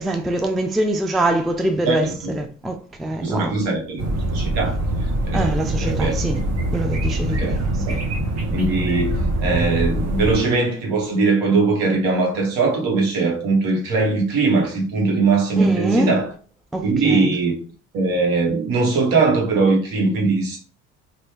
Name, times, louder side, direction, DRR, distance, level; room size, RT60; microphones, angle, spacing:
voice 1, 0.0-2.1 2.4-3.5 5.3-6.4 6.7-8.0 15.6-16.1 16.7-17.4, right 1 dB, ahead, 0.3 m, -24 dB
voice 2, 1.8-2.4 3.2-4.8 5.3-6.1 7.3-8.0 8.5-16.3 16.8-17.5 17.9-20.6, right 3 dB, 65° right, 1.3 m, -20 dB
sound 1, 4.0-10.4, right 1 dB, 40° right, 1.0 m, -23 dB
3.2 x 2.6 x 3.0 m
hypercardioid pair, 65°, 38 cm